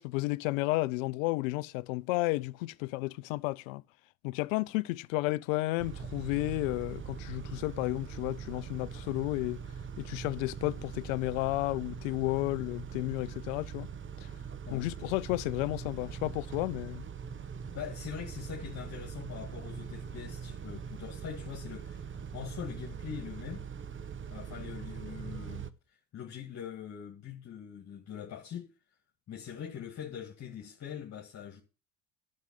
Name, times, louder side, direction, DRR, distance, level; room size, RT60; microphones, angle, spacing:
voice 1, 0.0-3.8 4.2-9.6 10.0-13.9 14.2-14.3 14.7-17.0, left 21 dB, 75° left, 0.6 m, -32 dB
Car / Idling / Accelerating revving vroom, 5.8-25.7, right 7 dB, 30° right, 1.1 m, -42 dB
voice 2, 17.7-23.6 24.3-25.7 26.1-28.7 29.3-31.6, left 8 dB, 40° left, 2.1 m, -43 dB
11.5 x 6.5 x 8.3 m
hypercardioid pair, 70°, 40 cm